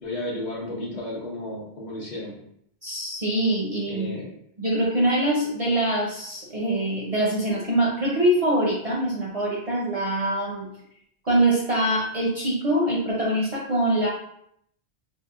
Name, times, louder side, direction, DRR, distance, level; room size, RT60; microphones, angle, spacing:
voice 1, 0.0-2.4 3.9-4.3, left 1 dB, 50° left, -3 dB, 0.7 m, -33 dB
voice 2, 2.8-4.2 4.6-10.7 11.2-14.1, right 1 dB, 45° right, -4 dB, 0.5 m, -24 dB
3.5 x 2.0 x 2.4 m, 0.71 s
omnidirectional pair, 1.1 m